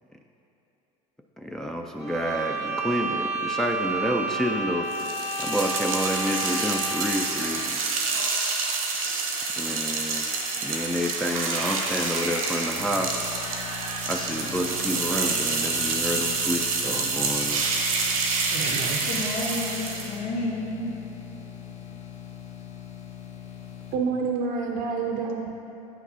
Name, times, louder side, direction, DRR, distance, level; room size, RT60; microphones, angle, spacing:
voice 1, 1.4-7.8 9.6-10.3 10.6-13.1 14.1-17.7, equal, 5° left, 2 dB, 0.3 m, -29 dB
sound 1, 2.0-7.3, right 3 dB, 20° left, 1.5 m, -31 dB
sound 2, 4.9-20.2, right 4 dB, 85° right, 0.8 m, -28 dB
sound 3, 12.8-24.0, left 9 dB, 40° left, 0.8 m, -42 dB
voice 2, 18.4-19.2 23.9-25.5, right 5 dB, 55° right, 1 dB, 0.6 m, -29 dB
voice 3, 19.0-20.9, left 2 dB, 80° left, -2 dB, 1.0 m, -31 dB
8.8 x 5.9 x 2.7 m, 2.9 s
hypercardioid pair, 70°, 18 cm